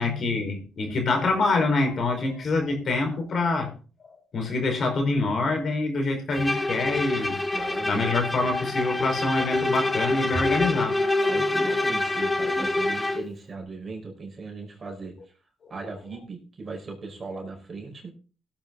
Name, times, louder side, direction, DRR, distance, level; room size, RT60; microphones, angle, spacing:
voice 1, 0.0-3.7 4.0-7.4 7.8-11.0 15.6-15.7, left 3 dB, 50° left, 3 dB, 5.0 m, -26 dB
Bowed string instrument, 6.3-13.3, left 2 dB, 15° left, 1.6 m, -26 dB
voice 2, 7.5-8.1 11.3-15.3 15.7-18.1, right 3 dB, 35° right, 1 dB, 5.4 m, -38 dB
17.0 x 8.6 x 4.0 m, 0.36 s
cardioid pair, 90°, 0 cm